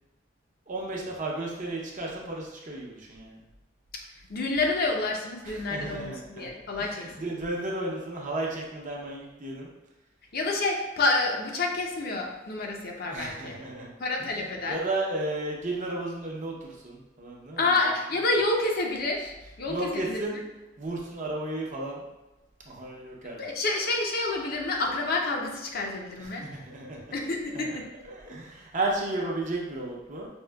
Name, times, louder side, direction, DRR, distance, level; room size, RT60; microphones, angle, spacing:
voice 1, 0.7-3.4 5.4-6.5 6.8-9.7 13.1-13.9 14.2-14.3 14.7-17.7 19.7-20.4 20.8-22.0 22.7-23.4 26.2-27.1 27.5-27.6 28.0-30.3, right 2 dB, 45° right, -2 dB, 0.7 m, -33 dB
voice 2, 4.3-7.0 10.3-13.6 14.0-14.8 17.6-19.3 19.6-20.4 23.4-26.5 27.1-27.9, left 2 dB, 55° left, 0 dB, 0.6 m, -28 dB
5.2 x 2.7 x 2.3 m, 1.0 s
head